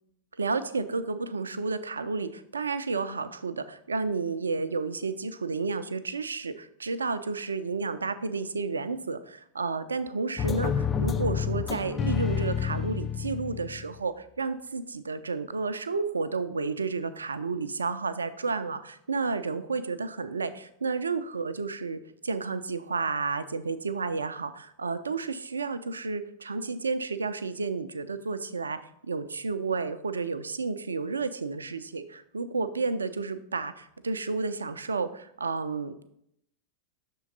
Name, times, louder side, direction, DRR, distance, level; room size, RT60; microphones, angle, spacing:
voice 1, 0.4-36.1, right 4 dB, 75° right, 12 dB, 0.4 m, -31 dB
sound 1, 10.4-14.0, left 8 dB, 20° left, 0.3 m, -29 dB
6.3 x 3.7 x 5.3 m, 0.75 s
figure-of-eight pair, 90°, 0 cm